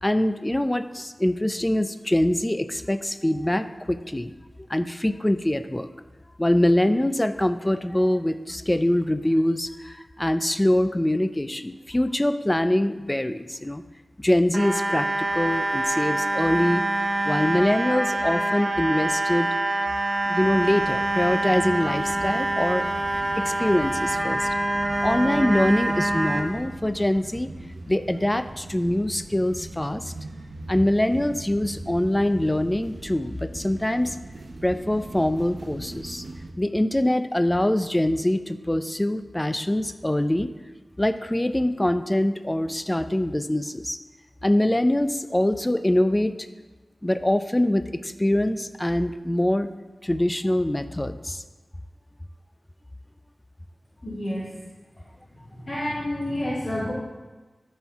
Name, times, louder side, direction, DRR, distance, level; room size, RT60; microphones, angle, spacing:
voice 1, 0.0-4.3 4.6-5.9 6.4-13.8 14.2-16.9 17.2-19.5 20.3-22.8 23.4-24.6 25.0-27.5 27.9-30.1 30.7-34.2 34.6-36.2 36.6-40.5 41.0-44.0 44.4-46.3 47.0-49.7 50.0-51.4, left 1 dB, 20° left, 10 dB, 0.4 m, -24 dB
sound 1, 14.5-26.4, right 1 dB, 45° right, 1.0 m, -25 dB
sound 2, 20.4-36.5, right 2 dB, 75° right, 0.7 m, -40 dB
voice 2, 54.0-54.5 55.5-56.9, left 1 dB, 35° left, -10 dB, 2.1 m, -29 dB
13.0 x 4.4 x 3.5 m, 1.2 s
wide cardioid pair, 70°, 0 cm